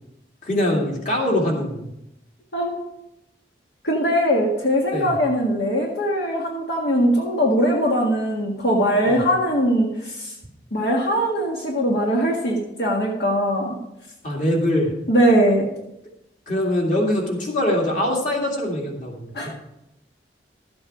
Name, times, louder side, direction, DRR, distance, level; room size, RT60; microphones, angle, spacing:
voice 1, 0.4-1.9 4.9-5.1 9.1-9.2 14.2-14.9 16.5-19.5, left 1 dB, 45° left, -1 dB, 2.5 m, -23 dB
voice 2, 3.8-10.3 10.7-13.8 15.1-15.7 19.3-19.5, equal, 75° left, -1 dB, 1.8 m, -21 dB
12.5 x 7.9 x 4.8 m, 0.85 s
head